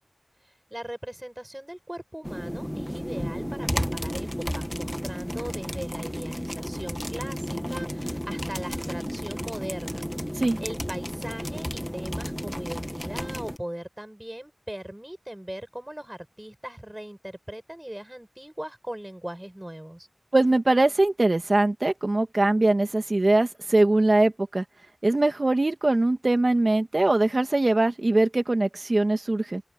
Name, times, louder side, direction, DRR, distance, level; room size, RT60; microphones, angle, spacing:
voice 1, 0.7-20.1, right 1 dB, 20° right, 5.9 m, -39 dB
sound 1, 2.2-13.6, equal, 5° left, 1.6 m, -32 dB
voice 2, 20.3-24.6 25.0-29.6, right 2 dB, 75° right, 2.2 m, -22 dB
open air
wide cardioid pair, 45°, 0 cm